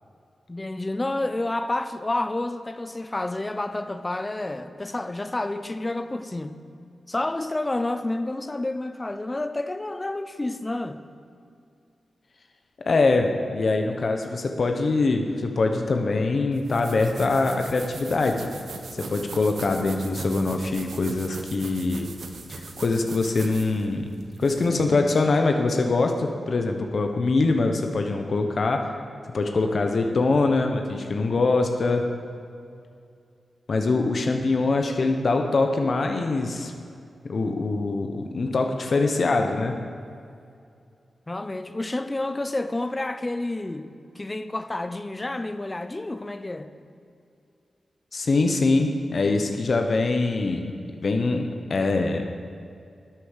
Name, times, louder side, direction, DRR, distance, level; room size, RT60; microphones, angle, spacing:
voice 1, 0.5-6.6 7.1-11.0 41.3-43.9 44.2-46.7, left 2 dB, 25° left, 0.7 m, -29 dB
voice 2, 12.9-18.5 19.0-22.1 22.5-24.1 24.4-28.9 29.3-32.0 33.7-36.7 37.2-39.8 48.1-50.7 51.0-52.2, left 3 dB, 55° left, 0.9 m, -23 dB
sound 1, 16.5-24.8, right 4 dB, 75° right, 1.1 m, -40 dB
10.5 x 8.4 x 6.5 m
cardioid pair, 80°, 0 cm